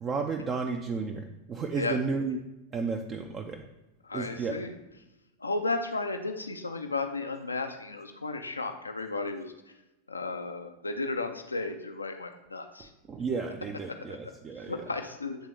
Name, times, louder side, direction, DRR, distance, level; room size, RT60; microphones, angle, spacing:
voice 1, 0.0-2.4 2.7-3.6 4.1-4.6 13.1-14.8, right 4 dB, 25° right, 3 dB, 0.4 m, -32 dB
voice 2, 4.0-4.8 5.4-9.5 10.1-12.9 14.6-15.5, left 3 dB, 80° left, 6 dB, 0.4 m, -34 dB
9.1 x 3.7 x 3.2 m, 0.98 s
figure-of-eight pair, 90°, 0 cm